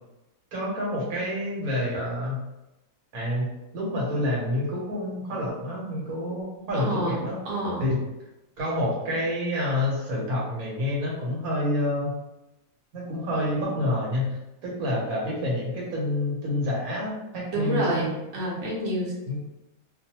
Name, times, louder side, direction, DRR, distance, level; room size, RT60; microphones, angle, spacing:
voice 1, 0.5-2.4 3.1-7.4 7.8-8.0 8.6-12.2 12.9-18.0 19.3-19.4, left 1 dB, 75° right, -5 dB, 1.4 m, -28 dB
voice 2, 6.7-7.9 17.5-19.1, right 1 dB, 60° right, -5 dB, 1.0 m, -28 dB
2.5 x 2.4 x 2.9 m, 0.96 s
omnidirectional pair, 1.5 m